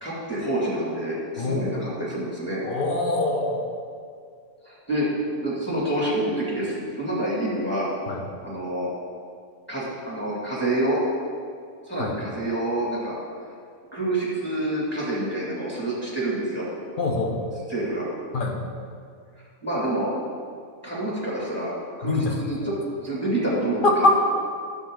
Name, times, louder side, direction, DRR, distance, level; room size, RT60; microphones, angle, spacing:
voice 1, 0.0-2.6 4.6-5.1 5.4-7.9 8.4-8.9 9.7-11.0 11.9-13.1 13.9-16.7 17.7-18.1 19.6-20.1 20.8-22.7 23.0-24.1, right 1 dB, 5° left, -7 dB, 2.4 m, -27 dB
voice 2, 1.4-1.9 2.6-3.7 8.1-8.2 12.0-12.2 17.0-17.4 18.3-18.6 22.0-22.3 23.8-24.1, left 2 dB, 40° left, 2 dB, 1.0 m, -23 dB
9.8 x 7.4 x 3.9 m, 2.2 s
omnidirectional pair, 1.5 m